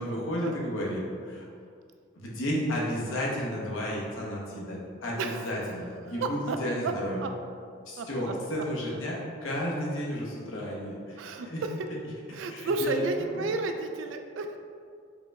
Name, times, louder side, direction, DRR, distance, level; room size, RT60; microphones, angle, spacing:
voice 1, 0.0-1.4 2.1-7.2 7.9-11.2 11.5-11.6 12.5-13.0 13.3-13.5, equal, 90° left, -4 dB, 0.9 m, -32 dB
voice 2, 5.2-5.6 5.9-6.6 6.8-6.9 7.2-7.3 8.0-8.3 8.9-9.0 11.2-11.9 12.3-14.6, right 3 dB, 70° right, 6 dB, 0.3 m, -32 dB
4.8 x 2.1 x 3.5 m, 2.2 s
head